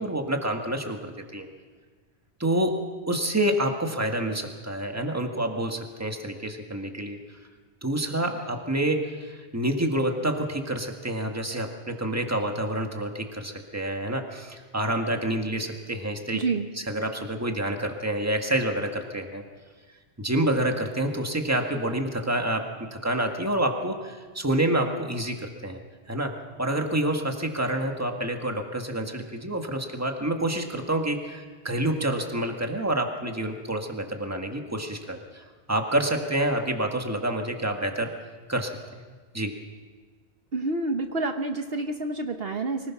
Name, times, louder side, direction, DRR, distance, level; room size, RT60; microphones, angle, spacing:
voice 1, 0.0-1.5 2.4-7.2 7.8-16.4 16.9-19.4 20.2-25.8 26.1-38.1 38.5-38.8 39.3-39.5, right 1 dB, 15° right, 3 dB, 1.8 m, -28 dB
voice 2, 16.3-16.7 40.5-42.9, right 3 dB, 60° right, 5 dB, 1.3 m, -28 dB
25.0 x 19.0 x 6.0 m, 1.5 s
omnidirectional pair, 1.1 m